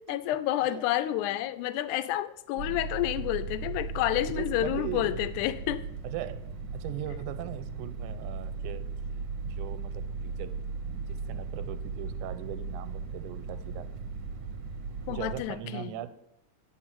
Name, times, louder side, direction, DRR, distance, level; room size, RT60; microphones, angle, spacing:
voice 1, 0.1-5.8 15.1-16.0, left 13 dB, 85° left, 13 dB, 2.0 m, -29 dB
sound 1, 2.6-15.4, right 4 dB, 70° right, 1.0 m, -37 dB
voice 2, 4.4-5.2 6.0-6.4 6.7-8.9 9.4-10.6 10.8-13.9 15.1-16.1, right 11 dB, 90° right, 11 dB, 2.1 m, -40 dB
10.0 x 4.5 x 7.5 m, 0.77 s
omnidirectional pair, 3.5 m